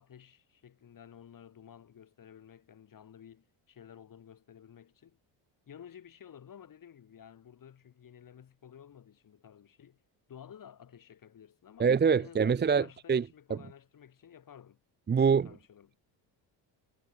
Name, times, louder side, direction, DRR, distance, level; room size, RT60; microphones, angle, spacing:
voice 1, 0.0-5.2 5.7-10.0 10.3-11.9 12.2-14.8 15.1-16.0, left 8 dB, 45° left, 7.8 m, -53 dB
voice 2, 11.8-13.2 13.5-13.6 15.1-15.5, right 6 dB, 20° right, 0.8 m, -25 dB
cardioid pair, 105°, 46 cm